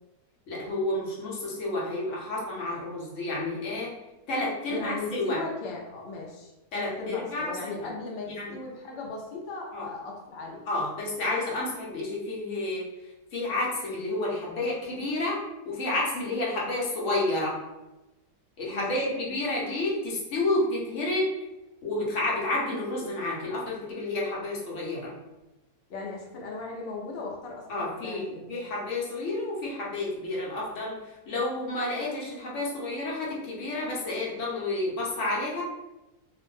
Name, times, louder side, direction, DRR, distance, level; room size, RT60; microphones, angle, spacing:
voice 1, 0.5-3.9 4.3-5.4 6.7-7.9 8.4-8.5 9.7-9.9 10.7-12.9 13.3-15.4 15.7-17.6 18.6-21.3 21.8-25.1 27.7-28.2 28.5-31.0 31.3-35.6, left 2 dB, 60° left, -5 dB, 1.0 m, -30 dB
voice 2, 4.7-10.6 18.7-19.2 25.9-28.6, left 3 dB, 85° left, -2 dB, 0.5 m, -38 dB
2.8 x 2.1 x 3.0 m, 1.0 s
omnidirectional pair, 1.7 m